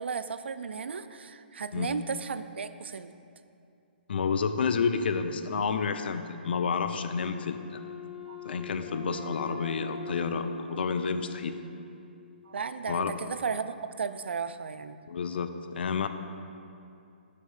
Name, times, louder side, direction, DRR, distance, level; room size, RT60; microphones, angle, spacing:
voice 1, 0.0-3.1 8.3-8.4 12.5-15.0, right 5 dB, 85° right, 12 dB, 0.4 m, -35 dB
voice 2, 4.1-7.8 8.4-11.6 12.9-13.1 15.1-16.1, left 5 dB, 65° left, 9 dB, 0.5 m, -30 dB
Wind instrument woodwind instrument, 7.1-12.1, left 4 dB, 35° left, 2.1 m, -43 dB
6.4 x 5.5 x 6.5 m, 2.6 s
hypercardioid pair, 155°, 6 cm